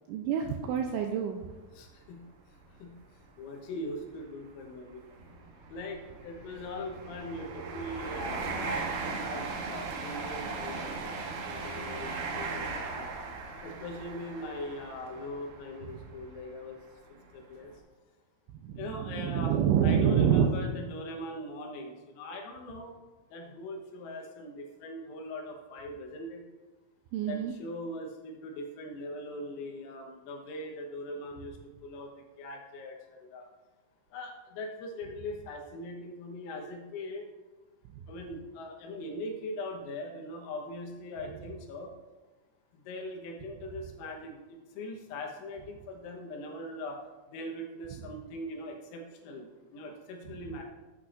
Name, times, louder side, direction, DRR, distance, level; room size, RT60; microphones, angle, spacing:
voice 1, 0.1-1.4 18.6-20.5 27.1-27.5, right 8 dB, 90° right, 3 dB, 2.7 m, -27 dB
sound 1, 0.6-0.8 1.4-1.5 2.6-2.8 3.0-3.2 3.9-16.6 17.2-17.4, right 4 dB, 70° right, 2.9 m, -38 dB
voice 2, 1.7-2.2 2.8-2.9 3.4-5.0 5.7-11.1 11.5-13.1 13.6-16.8 17.3-17.7 18.8-19.6 19.8-23.0 23.3-26.4 27.3-33.5 34.1-37.3 38.1-41.9 42.7-47.0 47.3-49.5 49.7-50.6, left 1 dB, 85° left, 1 dB, 3.9 m, -41 dB
12.0 x 8.5 x 2.5 m, 1.2 s
omnidirectional pair, 6.0 m